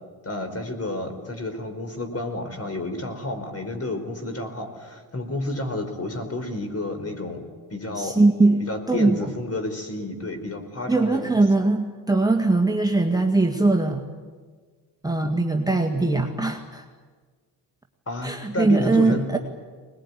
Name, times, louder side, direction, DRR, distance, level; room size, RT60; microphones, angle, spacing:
voice 1, 0.2-7.4 7.7-8.2 8.6-11.3 18.1-19.4, left 1 dB, 30° left, 6 dB, 4.8 m, -30 dB
voice 2, 8.0-9.3 10.9-14.0 15.0-16.8 18.2-19.4, right 2 dB, 10° right, 2 dB, 1.9 m, -21 dB
21.5 x 20.5 x 9.9 m, 1.5 s
supercardioid pair, 70°, 46 cm